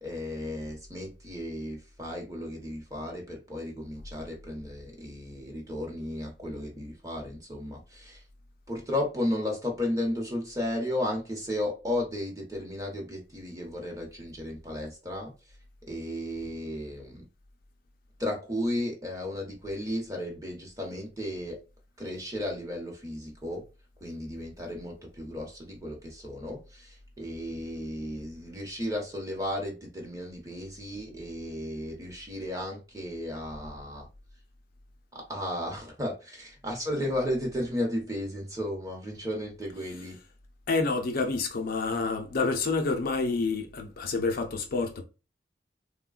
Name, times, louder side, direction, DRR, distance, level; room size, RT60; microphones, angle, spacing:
voice 1, 0.0-8.2 8.7-15.3 15.9-17.2 18.2-21.6 22.0-23.6 24.0-34.1 35.1-40.2, left 1 dB, 20° right, 0.9 m, -34 dB
voice 2, 40.7-45.0, left 3 dB, 55° left, 0.5 m, -28 dB
3.4 x 2.2 x 2.4 m
head